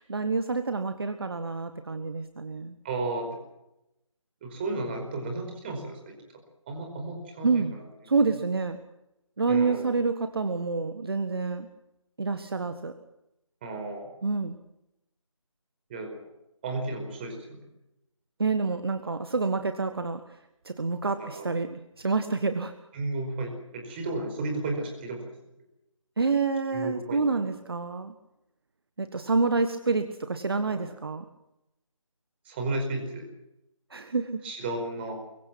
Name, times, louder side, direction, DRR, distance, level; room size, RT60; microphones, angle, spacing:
voice 1, 0.0-2.7 7.4-7.7 8.0-8.8 9.4-11.7 12.2-12.9 14.2-14.6 18.4-20.2 20.6-22.7 26.2-28.1 29.0-31.2 33.9-34.4, right 4 dB, 50° right, 9 dB, 1.6 m, -28 dB
voice 2, 2.8-3.4 4.4-6.2 6.7-7.8 9.5-9.9 13.6-14.1 15.9-16.2 16.6-17.6 21.2-21.5 22.9-25.2 26.7-27.4 30.7-30.8 32.4-33.3 34.4-35.1, right 2 dB, 20° right, 4 dB, 5.0 m, -33 dB
24.5 x 23.5 x 6.1 m, 0.88 s
figure-of-eight pair, 155°, 17 cm